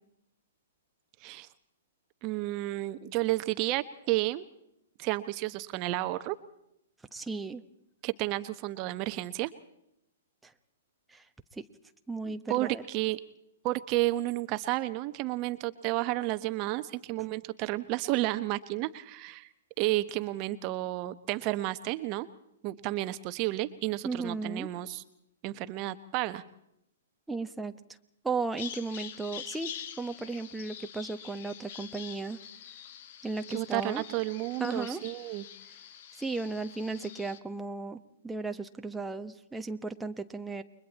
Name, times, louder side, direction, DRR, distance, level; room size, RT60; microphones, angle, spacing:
voice 1, 2.2-4.4 5.0-6.4 8.0-9.5 12.5-13.2 13.6-19.5 19.8-22.3 22.6-25.0 25.4-26.4 33.5-35.4, right 17 dB, 35° right, 12 dB, 1.1 m, -31 dB
voice 2, 7.1-7.6 10.4-10.5 11.1-11.2 11.5-11.6 12.1-12.8 24.0-24.7 27.3-27.7 28.2-32.4 33.2-34.0 34.6-35.0 36.2-40.6, right 3 dB, 5° right, 6 dB, 1.2 m, -35 dB
Bird vocalization bird call bird song, 28.6-37.4, left 9 dB, 50° left, 1.8 m, -45 dB
30.0 x 23.0 x 4.2 m, 0.79 s
figure-of-eight pair, 115°, 0 cm